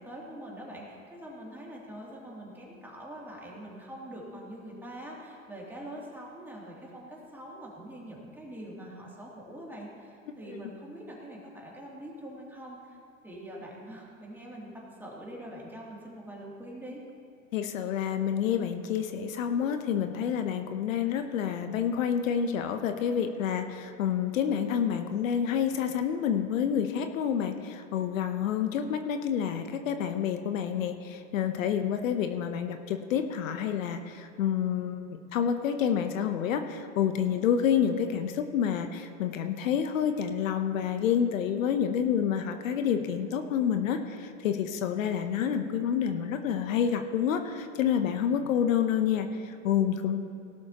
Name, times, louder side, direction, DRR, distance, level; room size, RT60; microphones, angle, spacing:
voice 1, 0.0-13.0 13.2-17.0, right 1 dB, 5° right, -4 dB, 2.8 m, -44 dB
voice 2, 17.5-50.2, left 8 dB, 75° left, 7 dB, 1.0 m, -28 dB
18.0 x 12.0 x 3.0 m, 2.6 s
hypercardioid pair, 115°, 40 cm